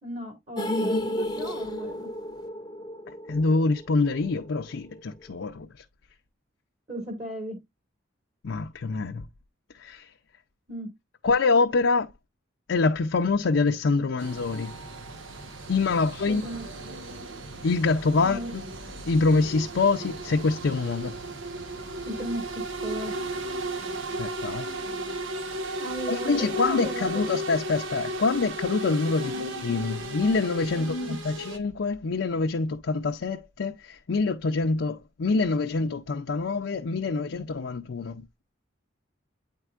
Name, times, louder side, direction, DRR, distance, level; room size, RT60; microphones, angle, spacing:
voice 1, 0.0-2.1 6.9-7.6 10.7-10.9 16.2-16.7 18.2-18.5 22.1-23.1 25.8-27.3 29.2-29.4 30.8-31.2, right 1 dB, 35° right, 1.8 m, -36 dB
sound 1, 0.6-4.7 5.0-5.1 5.4-5.5, left 1 dB, 20° left, 0.7 m, -32 dB
voice 2, 3.3-5.7 8.4-9.2 9.8-10.1 11.2-12.1 12.7-14.7 15.7-16.4 17.6-18.6 19.1-21.2 24.2-24.7 26.1-38.2, left 3 dB, 75° left, 0.5 m, -25 dB
sound 2, 14.2-31.6, right 1 dB, 85° right, 1.1 m, -35 dB
9.0 x 4.5 x 2.4 m
head